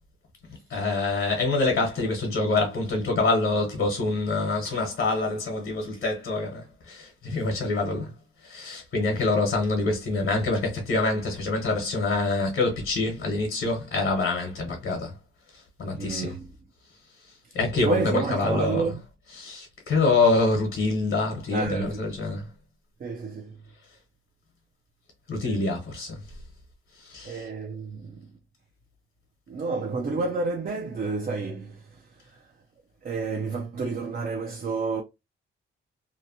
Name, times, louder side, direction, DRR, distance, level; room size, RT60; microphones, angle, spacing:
voice 1, 0.7-8.1 8.4-15.2 15.8-16.3 17.5-19.0 19.3-22.5 25.3-26.2 27.0-27.5, left 3 dB, 65° left, 1.1 m, -26 dB
voice 2, 16.0-16.5 17.5-19.0 21.5-22.1 22.3-22.4 23.0-23.6 25.4-25.7 27.2-28.3 29.5-32.5 33.0-35.0, right 4 dB, 40° right, 0.5 m, -30 dB
2.8 x 2.1 x 2.7 m
wide cardioid pair, 125°, 21 cm